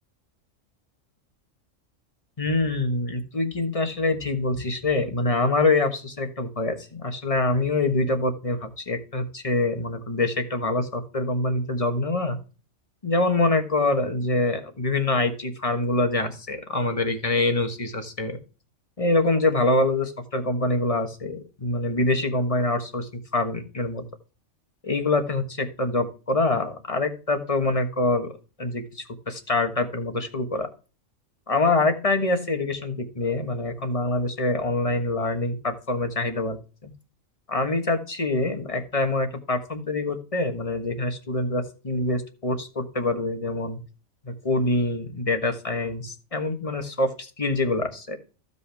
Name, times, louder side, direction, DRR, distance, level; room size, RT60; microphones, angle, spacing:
voice 1, 2.4-12.4 13.0-18.4 19.0-24.0 24.8-28.3 28.6-30.7 31.5-36.9 37.5-43.8 44.2-48.2, left 2 dB, 30° left, 6 dB, 1.4 m, -25 dB
15.0 x 5.5 x 3.4 m, 0.34 s
omnidirectional pair, 1.3 m